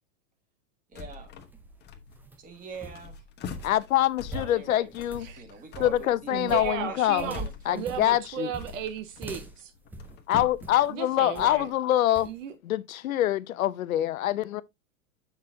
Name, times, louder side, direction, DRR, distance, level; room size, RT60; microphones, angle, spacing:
sound 1, 0.9-1.5 1.8-2.4 2.7-11.7, left 4 dB, 25° left, 1.1 m, -43 dB
voice 1, 0.9-1.3 2.4-3.2 4.3-4.9 5.3-8.2, right 4 dB, 20° right, 2.0 m, -43 dB
sound 2, 1.2-10.9 11.3-11.7 12.1-12.4, right 2 dB, 5° right, 0.5 m, -45 dB
voice 2, 3.6-5.3 5.8-7.3 7.7-8.5 10.3-12.3 12.6-14.6, left 13 dB, 90° left, 0.8 m, -25 dB
voice 3, 6.3-7.5 7.7-9.7 10.9-11.7 12.2-12.5, right 9 dB, 70° right, 1.2 m, -35 dB
7.4 x 6.0 x 2.8 m
hypercardioid pair, 130°, 40 cm